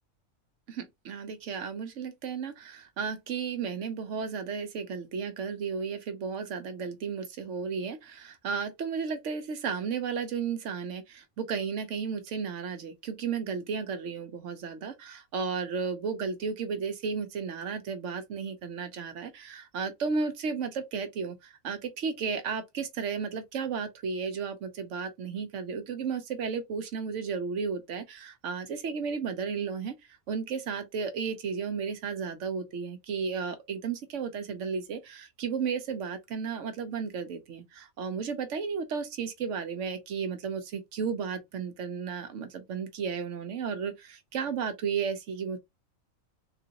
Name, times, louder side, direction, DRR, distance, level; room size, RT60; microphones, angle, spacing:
voice 1, 0.7-29.9 30.3-45.6, right 6 dB, 70° right, 1.0 m, -33 dB
3.7 x 2.5 x 2.8 m
omnidirectional pair, 1.4 m